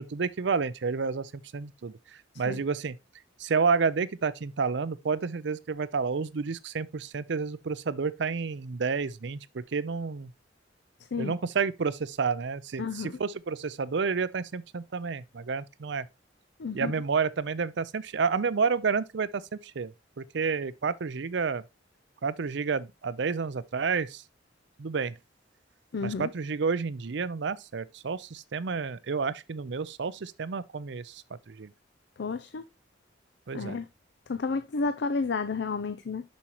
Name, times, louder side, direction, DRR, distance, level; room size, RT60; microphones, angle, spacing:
voice 1, 0.0-3.0 3.4-10.3 11.2-16.1 16.7-21.6 22.2-24.2 24.8-25.2 26.0-31.7 33.5-33.8, right 5 dB, 70° right, 0.5 m, -30 dB
voice 2, 12.8-13.1 16.6-16.9 25.9-26.3 32.2-32.6 33.5-33.9 34.3-36.2, left 4 dB, 65° left, 0.5 m, -31 dB
7.0 x 6.2 x 2.9 m
head